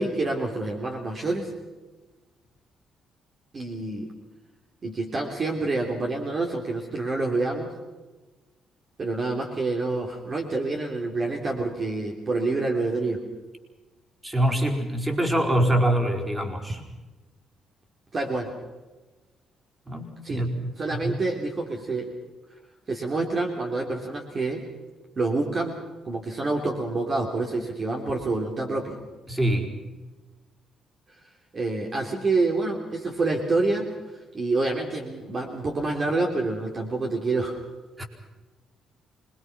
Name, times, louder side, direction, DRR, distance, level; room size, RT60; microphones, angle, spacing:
voice 1, 0.0-1.5 3.5-4.1 4.8-7.7 9.0-13.2 18.1-18.5 20.2-20.4 20.8-22.1 22.9-24.6 25.2-25.8 26.0-29.0 31.5-33.9 34.3-37.6, right 3 dB, 40° right, 1 dB, 3.2 m, -27 dB
voice 2, 14.2-16.8 19.9-21.2 29.3-29.7 38.0-38.1, right 1 dB, 15° right, 2 dB, 4.7 m, -25 dB
26.0 x 21.0 x 6.1 m, 1.2 s
cardioid pair, 90°, 0 cm